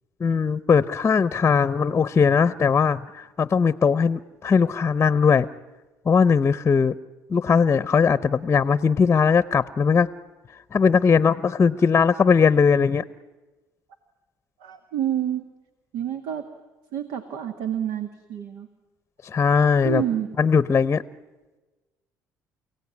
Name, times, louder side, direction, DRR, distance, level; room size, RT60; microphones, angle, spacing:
voice 1, 0.2-5.5 6.1-6.9 7.3-10.1 10.7-13.0 19.2-20.0 20.4-21.0, left 6 dB, 30° left, 15 dB, 0.8 m, -19 dB
voice 2, 14.6-15.5 15.9-16.5 16.9-18.7 19.6-20.3, right 10 dB, 85° right, 8 dB, 1.8 m, -28 dB
30.0 x 17.5 x 9.7 m, 1.2 s
cardioid pair, 100°, 7 cm